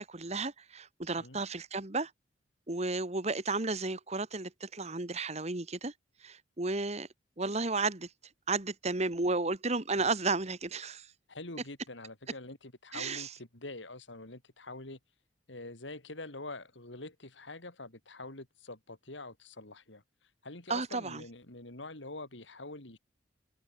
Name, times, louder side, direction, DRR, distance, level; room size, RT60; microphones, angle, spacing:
voice 1, 0.0-2.1 2.7-5.9 6.2-7.1 7.4-8.1 8.5-11.1 12.9-13.3 20.7-21.2, right 3 dB, 35° right, 1.7 m, -33 dB
voice 2, 11.3-15.0 15.5-20.0 20.4-23.0, left 2 dB, 80° left, 3.9 m, -45 dB
head